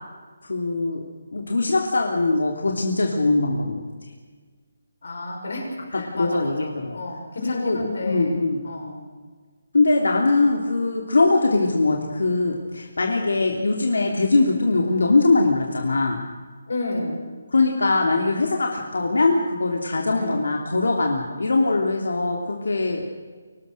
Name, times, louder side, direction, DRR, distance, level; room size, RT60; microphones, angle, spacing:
voice 1, 0.4-1.0 1.3-3.8 5.9-7.0 7.4-8.7 9.7-16.2 17.5-23.0, left 3 dB, 85° left, 1 dB, 3.1 m, -21 dB
voice 2, 5.0-9.0 16.7-17.3 20.1-20.6, left 2 dB, 55° left, 1 dB, 6.7 m, -31 dB
25.0 x 19.0 x 6.8 m, 1.5 s
hypercardioid pair, 180°, 0 cm